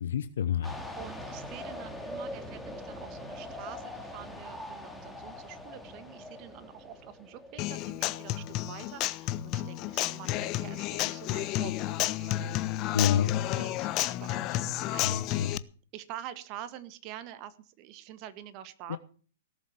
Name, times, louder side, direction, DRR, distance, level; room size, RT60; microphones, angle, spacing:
voice 1, 0.0-0.8 12.9-13.3 15.0-15.5 18.9-19.0, left 9 dB, 75° left, 11 dB, 0.9 m, -28 dB
sound 1, 0.6-8.0, left 1 dB, ahead, 2.5 m, -42 dB
voice 2, 1.0-12.7 13.5-15.6 15.9-19.0, right 11 dB, 40° right, 13 dB, 1.7 m, -46 dB
Human voice / Acoustic guitar, 7.6-15.6, left 15 dB, 35° left, 0.8 m, -31 dB
17.5 x 7.6 x 7.3 m, 0.42 s
hypercardioid pair, 125°, 0 cm